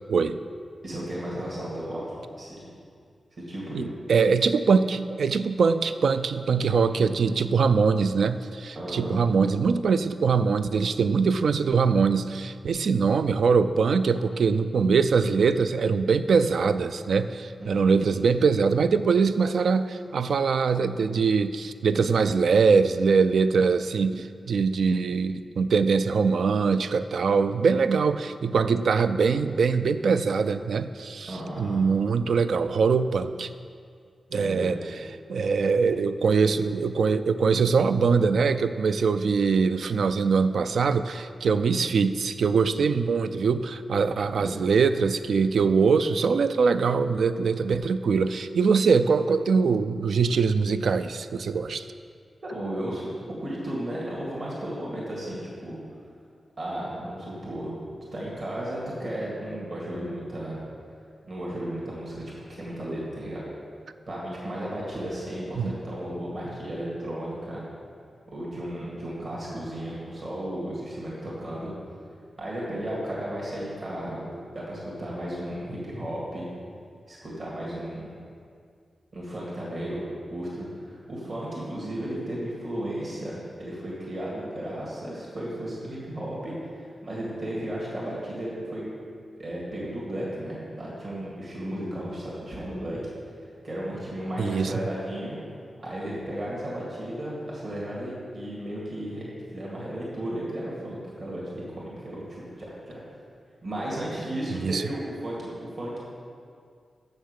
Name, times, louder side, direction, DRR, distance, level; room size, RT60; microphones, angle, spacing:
voice 1, 0.8-2.0 2.4-2.6 3.3-3.9 8.8-9.1 17.6-18.2 31.3-31.8 34.3-34.7 44.4-44.6 52.4-53.1 53.4-55.8 56.6-57.7 58.1-60.6 61.3-62.2 62.6-63.4 64.1-67.6 68.3-71.7 72.4-76.5 77.1-78.1 79.1-80.0 80.3-86.5 86.8-88.8 89.4-93.0 93.6-95.4 95.8-103.0 103.6-106.0, right 1 dB, 45° right, -6 dB, 2.0 m, -34 dB
voice 2, 3.7-33.5 34.3-34.8 35.3-51.9 65.6-65.8 94.4-94.7 104.6-104.8, right 5 dB, 80° right, 12 dB, 0.3 m, -23 dB
6.9 x 6.5 x 6.5 m, 2.2 s
wide cardioid pair, 160°, 0 cm